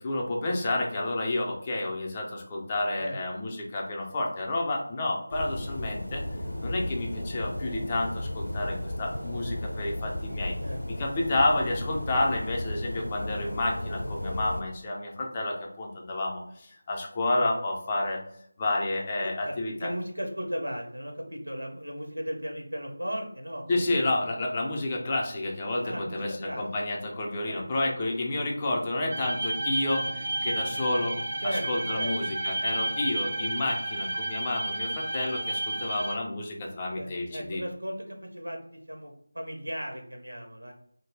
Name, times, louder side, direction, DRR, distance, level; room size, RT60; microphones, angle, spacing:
voice 1, 0.0-6.2 6.6-10.5 10.9-18.2 18.6-19.9 23.7-31.2 31.5-37.6, left 2 dB, 20° left, -1 dB, 0.4 m, -30 dB
sound 1, 5.3-14.6, left 1 dB, 70° left, 0.5 m, -34 dB
voice 2, 19.2-19.5 19.8-23.6 25.8-26.6 27.5-27.6 31.4-31.7 31.9-32.1 37.0-40.7, equal, 85° right, 3 dB, 0.6 m, -36 dB
sound 2, 29.1-36.1, right 2 dB, 40° right, 0.5 m, -31 dB
2.1 x 2.0 x 3.2 m, 0.67 s
figure-of-eight pair, 165°, 0 cm